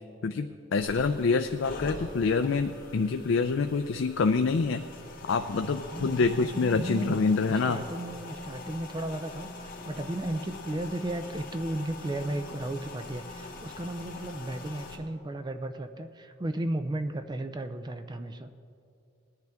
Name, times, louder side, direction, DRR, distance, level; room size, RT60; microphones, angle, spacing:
voice 1, 0.2-4.8 5.3-7.8, left 4 dB, 65° left, 7 dB, 0.4 m, -26 dB
sound 1, 0.7-15.0, left 2 dB, 45° left, 1.5 m, -43 dB
voice 2, 5.9-6.3 6.5-7.2 7.5-18.5, right 1 dB, 20° right, 9 dB, 0.4 m, -34 dB
19.0 x 10.5 x 3.5 m, 2.5 s
head